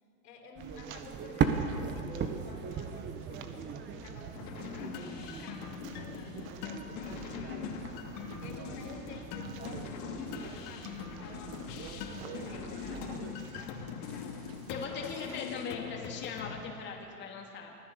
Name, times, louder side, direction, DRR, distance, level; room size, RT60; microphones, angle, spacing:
voice 1, 0.2-7.9 8.4-11.8 12.2-14.4 14.7-15.2, left 3 dB, 75° left, 2 dB, 4.8 m, -52 dB
sound 1, 0.5-13.3, right 6 dB, 20° right, 1.5 m, -39 dB
sound 2, 0.6-15.4, right 7 dB, 55° right, 1.9 m, -51 dB
sound 3, 4.3-16.6, left 7 dB, 45° left, 2.6 m, -42 dB
voice 2, 14.7-17.7, left 5 dB, 20° left, -1 dB, 2.5 m, -40 dB
25.5 x 16.5 x 6.9 m, 2.5 s
hypercardioid pair, 130°, 48 cm